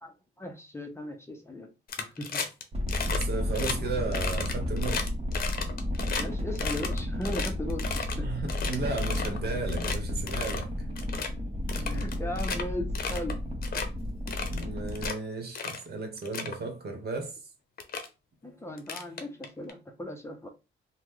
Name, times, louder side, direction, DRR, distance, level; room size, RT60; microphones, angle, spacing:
voice 1, 0.0-1.7 2.0-2.4 6.2-8.3 11.8-13.4 18.4-20.5, left 1 dB, 15° left, 0.6 m, -37 dB
sound 1, 1.9-2.6 2.9-3.2 3.5-3.8 4.1-6.2 6.6-8.2 8.5-9.4 9.7-10.0 10.3-10.6 11.0-11.3 11.7-12.6 13.0-13.3 13.6-13.9 14.3-15.1 15.6-15.8 16.2-16.6 17.4-17.5 17.8-18.1 18.8-19.7, left 5 dB, 50° left, 0.7 m, -34 dB
sound 2, 2.7-15.1, left 1 dB, 30° right, 1.0 m, -32 dB
voice 2, 3.1-5.1 8.2-10.7 14.5-17.4, right 3 dB, 55° right, 1.1 m, -34 dB
2.9 x 2.1 x 3.5 m
cardioid pair, 90°, 20 cm